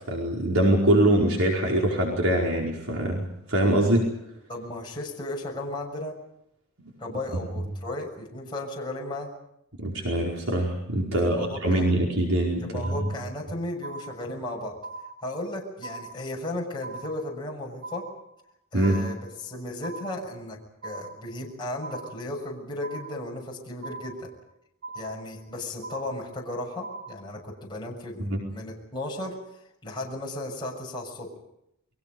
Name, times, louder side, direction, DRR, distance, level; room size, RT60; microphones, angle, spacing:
voice 1, 0.1-3.2 3.5-4.0 9.8-13.1 18.7-19.0 28.2-28.4, right 1 dB, 70° right, -1 dB, 4.8 m, -23 dB
voice 2, 4.5-6.1 7.0-9.3 11.1-11.9 12.6-14.7 15.2-18.1 18.7-20.6 20.8-24.3 24.9-29.4 29.8-31.3, left 1 dB, 20° left, -2 dB, 6.7 m, -35 dB
sound 1, 12.8-13.5 13.8-14.5 14.8-15.5 15.8-16.5 16.8-17.5 17.8-18.5 18.8-19.5 19.8-20.5 20.8-21.5 21.8-22.5 22.8-23.5 23.8-24.5 24.8-25.5 25.8-26.5 26.8-27.5, right 3 dB, 50° right, 6.6 m, -41 dB
29.5 x 23.5 x 5.4 m, 0.79 s
head